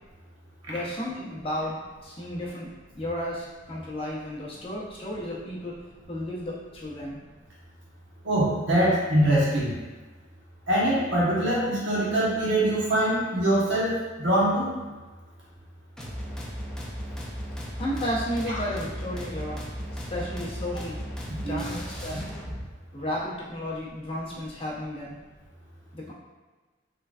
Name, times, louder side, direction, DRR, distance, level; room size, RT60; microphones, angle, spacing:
voice 1, 0.7-2.7 2.9-5.7 6.1-7.2 17.8-19.6 19.9-21.0 21.5-22.3 22.9-25.2 25.9-26.1, equal, 30° left, -6 dB, 0.8 m, -33 dB
voice 2, 8.2-9.8 10.7-14.7 18.5-18.6 21.3-21.6, right 1 dB, 70° right, -6 dB, 1.2 m, -23 dB
sound 1, 16.0-22.7, equal, 5° left, 0.5 m, -36 dB
3.8 x 3.3 x 2.4 m, 1.3 s
head